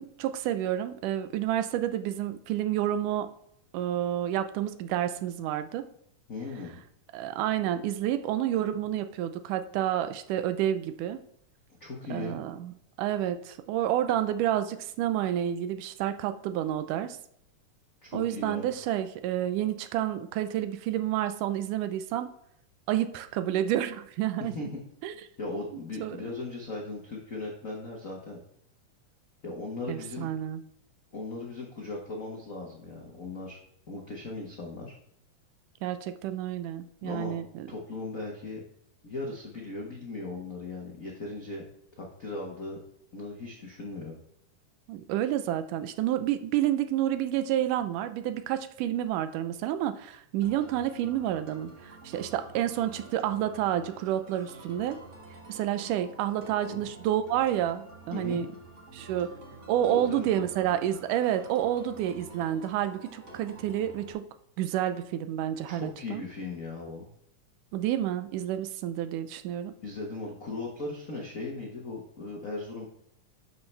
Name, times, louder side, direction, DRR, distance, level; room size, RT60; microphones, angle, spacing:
voice 1, 0.0-3.3 3.7-5.9 7.1-11.2 12.1-17.2 18.1-22.3 22.9-24.5 25.0-25.2 26.0-26.3 29.9-30.6 35.8-37.7 44.9-55.0 55.5-58.5 58.9-59.3 59.7-64.3 64.6-66.2 67.7-69.7, right 11 dB, 80° right, 10 dB, 2.1 m, -29 dB
voice 2, 6.3-6.7 11.8-12.4 18.0-18.7 24.4-24.8 25.4-28.4 29.4-30.3 31.1-33.6 33.9-34.9 37.0-37.4 37.7-38.6 39.0-41.6 42.0-42.8 43.1-44.2 56.6-56.8 58.1-58.4 59.9-60.5 65.7-67.1 69.8-72.8, left 3 dB, 80° left, -2 dB, 0.7 m, -38 dB
sound 1, 50.4-64.1, right 2 dB, 65° right, 0.7 m, -49 dB
11.5 x 5.7 x 3.4 m, 0.72 s
omnidirectional pair, 3.7 m